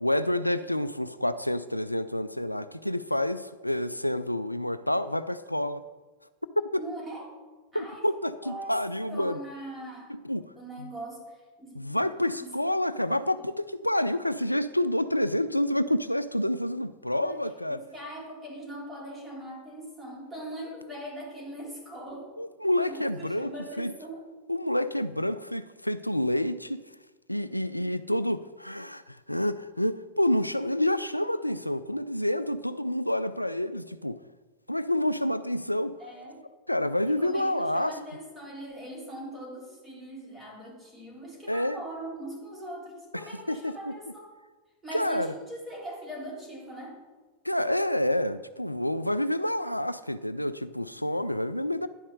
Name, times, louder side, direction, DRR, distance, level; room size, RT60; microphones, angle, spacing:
voice 1, 0.0-5.8 6.7-6.8 7.7-9.4 10.1-10.5 10.8-10.9 11.8-17.8 22.4-23.5 23.8-23.9 24.5-26.8 27.3-34.2 34.7-36.0 36.7-38.0 41.5-41.8 43.1-43.2 43.5-43.9 44.9-45.3 47.4-51.9, left 1 dB, 90° left, 13 dB, 0.3 m, -28 dB
voice 2, 6.8-7.4 7.7-8.1 8.4-8.8 9.1-10.1 10.6-12.0 12.4-12.6 17.2-17.5 17.8-22.3 22.8-24.3 36.0-36.4 37.1-44.3 44.8-47.0, right 1 dB, 10° right, -3 dB, 3.6 m, -41 dB
10.5 x 5.4 x 6.3 m, 1.3 s
figure-of-eight pair, 90°, 0 cm